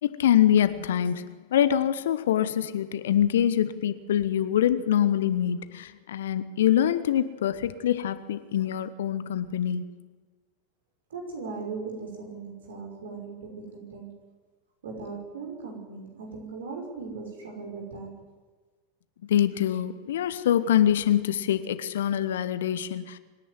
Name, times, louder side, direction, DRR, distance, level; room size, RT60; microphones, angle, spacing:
voice 1, 0.0-9.8 19.3-23.2, left 10 dB, 65° left, 1.2 m, -24 dB
voice 2, 11.1-14.2 14.8-18.2, right 4 dB, 70° right, 5.7 m, -38 dB
25.5 x 10.5 x 9.6 m
figure-of-eight pair, 85°, 0 cm